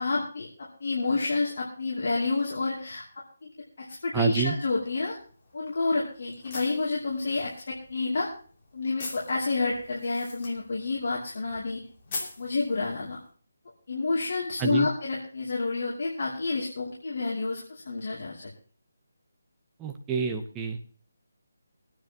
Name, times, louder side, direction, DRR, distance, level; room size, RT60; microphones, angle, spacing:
voice 1, 0.0-3.0 3.4-3.5 3.8-5.2 5.5-8.3 8.7-11.8 12.4-13.2 13.9-18.5, left 3 dB, 60° left, -3 dB, 2.8 m, -29 dB
voice 2, 4.1-4.6 14.6-14.9 19.8-20.8, right 6 dB, 10° right, 4 dB, 0.9 m, -28 dB
sound 1, 4.7-13.3, left 3 dB, 30° left, 3.0 m, -44 dB
23.0 x 9.4 x 2.9 m, 0.41 s
hypercardioid pair, 170°, 0 cm